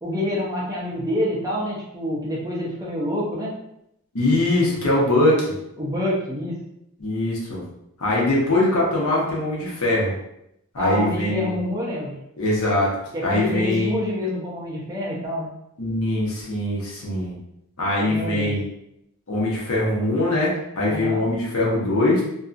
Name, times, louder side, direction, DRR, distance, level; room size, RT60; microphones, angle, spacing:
voice 1, 0.0-3.6 5.8-6.6 10.8-12.2 13.1-15.5 18.0-18.5 20.9-21.2, left 1 dB, 15° right, -4 dB, 0.5 m, -27 dB
voice 2, 4.1-5.5 7.0-7.6 8.0-10.1 10.7-11.6 12.4-12.9 13.2-14.0 15.8-17.3 17.8-18.6 19.3-22.2, left 1 dB, 75° left, -4 dB, 0.9 m, -22 dB
2.6 x 2.3 x 2.4 m, 0.80 s
head